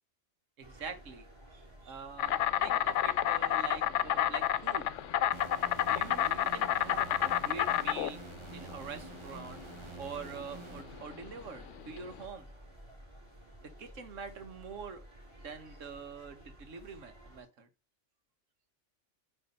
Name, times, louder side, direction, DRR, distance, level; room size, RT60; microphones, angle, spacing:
sound 1, 0.6-17.4, right 1 dB, 20° right, 3.7 m, -54 dB
voice 1, 0.6-4.9 5.9-8.2 8.5-9.6 10.0-12.5 13.6-15.0 15.4-17.7, right 5 dB, 80° right, 1.5 m, -45 dB
Insect, 2.2-12.2, left 11 dB, 75° left, 0.9 m, -30 dB
sound 2, 5.3-11.8, right 5 dB, 40° right, 0.4 m, -49 dB
9.1 x 3.3 x 5.4 m
omnidirectional pair, 1.3 m